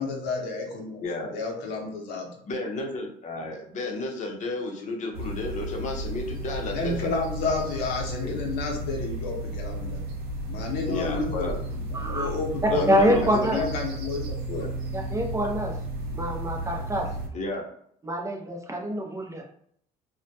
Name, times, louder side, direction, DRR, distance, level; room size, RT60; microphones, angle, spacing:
voice 1, 0.0-1.0 1.3-2.3 6.7-10.0 10.5-11.6 11.9-12.9 13.2-14.7, left 3 dB, 80° left, 1 dB, 0.7 m, -31 dB
voice 2, 1.0-1.3 2.5-7.1 8.2-8.4 10.9-11.5 12.7-13.7 14.5-14.7 17.3-17.6, left 2 dB, 45° left, 1 dB, 0.6 m, -32 dB
on a field, 5.1-17.3, right 1 dB, 70° right, 0.6 m, -33 dB
voice 3, 11.9-12.3 12.9-13.6 14.9-15.8 16.1-17.1 18.0-19.4, equal, 20° right, 0 dB, 0.4 m, -25 dB
2.2 x 2.1 x 2.7 m, 0.65 s
cardioid pair, 110°, 17 cm